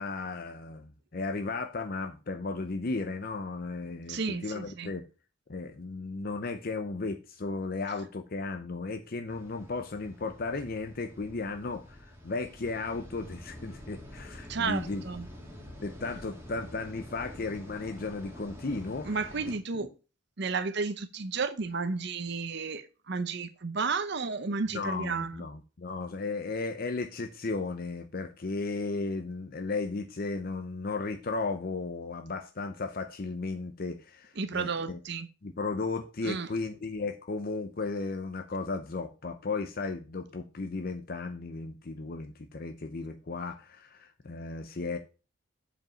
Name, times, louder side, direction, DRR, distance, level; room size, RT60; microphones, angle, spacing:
voice 1, 0.0-5.1 5.5-15.0 15.8-19.3 19.7-19.9 24.7-35.0 35.4-45.0, left 3 dB, 45° left, 0.6 m, -35 dB
voice 2, 4.1-4.9 14.5-15.3 19.1-19.9 20.4-25.4 34.4-35.3 36.2-36.5, right 4 dB, 55° right, 0.7 m, -32 dB
sound 1, 9.3-19.6, left 1 dB, 10° right, 2.2 m, -47 dB
7.8 x 5.1 x 5.7 m
head